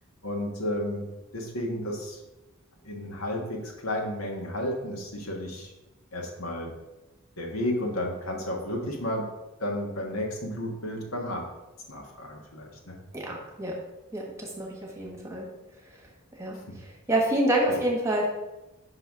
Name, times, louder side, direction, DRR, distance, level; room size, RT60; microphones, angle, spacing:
voice 1, 0.2-1.1 1.3-2.2 2.8-5.7 6.1-6.7 7.4-9.3 9.6-11.4 11.9-13.0 16.7-16.8 17.7-17.8, left 1 dB, 80° left, 0 dB, 1.4 m, -32 dB
voice 2, 13.1-13.7 14.1-14.7 15.0-15.5 16.4-16.6 17.1-18.3, right 1 dB, 15° right, -1 dB, 1.3 m, -27 dB
5.6 x 4.0 x 5.9 m, 1.0 s
head